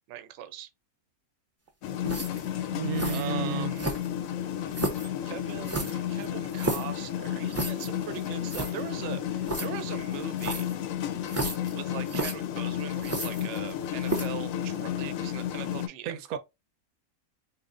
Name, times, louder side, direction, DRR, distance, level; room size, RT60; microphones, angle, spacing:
voice 1, 0.1-0.7 2.4-2.8 3.1-3.9 5.2-10.7 11.4-16.2, right 10 dB, 65° right, 0.9 m, -40 dB
sound 1, 1.8-15.9, left 10 dB, 75° left, 1.0 m, -32 dB
sound 2, 2.0-2.5 3.0-3.3 3.8-4.3 4.7-5.1 5.7-6.9 7.5-7.9 8.2-8.3 8.5-8.7 9.5-9.7 10.4-10.8 11.3-11.7 12.1-12.3 13.0-13.7 14.0-14.4, right 2 dB, 15° right, 0.5 m, -32 dB
voice 2, 2.7-3.7 16.0-16.4, right 7 dB, 85° right, 1.1 m, -32 dB
4.2 x 3.0 x 2.5 m
omnidirectional pair, 1.5 m